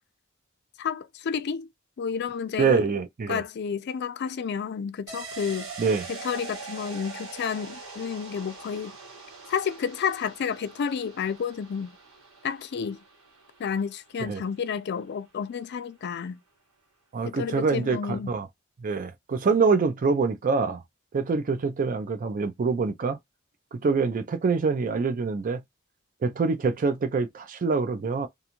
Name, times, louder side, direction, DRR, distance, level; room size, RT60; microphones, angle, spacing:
voice 1, 0.8-1.7 2.0-2.8 3.3-5.7 6.1-9.0 9.5-11.9 12.4-13.0 13.6-16.4 17.3-18.3, left 6 dB, 55° left, 0.4 m, -31 dB
voice 2, 2.6-3.4 5.8-6.0 14.3-14.4 17.1-18.5 18.8-20.8 21.1-23.2 23.7-25.6 26.2-28.3, right 4 dB, 40° right, 0.4 m, -25 dB
sound 1, 5.1-14.5 14.8-14.9, right 4 dB, 90° right, 1.2 m, -43 dB
2.5 x 2.3 x 2.9 m
head